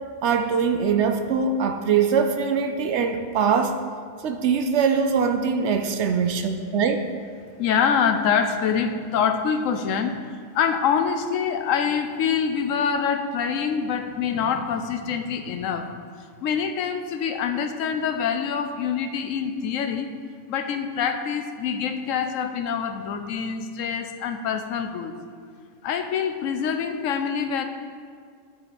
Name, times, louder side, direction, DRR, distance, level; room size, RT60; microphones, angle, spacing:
voice 1, 0.2-3.8 4.2-7.0, right 6 dB, 65° right, 6 dB, 0.8 m, -22 dB
voice 2, 7.6-15.9 16.4-20.1 20.5-25.1 25.8-27.6, left 7 dB, 80° left, 6 dB, 1.0 m, -25 dB
12.0 x 4.0 x 4.2 m, 2.1 s
omnidirectional pair, 1.3 m